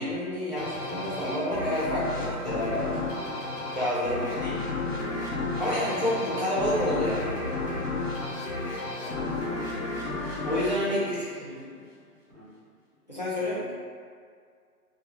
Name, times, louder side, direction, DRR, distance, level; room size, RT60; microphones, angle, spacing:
voice 1, 0.0-3.0 3.7-4.5 5.6-7.3 10.4-11.0 13.1-13.6, left 1 dB, 30° left, -10 dB, 0.4 m, -29 dB
sound 1, 0.6-11.8, left 2 dB, 80° left, 0.8 m, -32 dB
voice 2, 4.1-4.8 5.4-7.1 8.9-9.7 10.8-11.8 12.3-12.5 13.4-13.7, equal, 15° right, -11 dB, 0.8 m, -43 dB
2.2 x 2.1 x 3.0 m, 2.1 s
figure-of-eight pair, 155°, 46 cm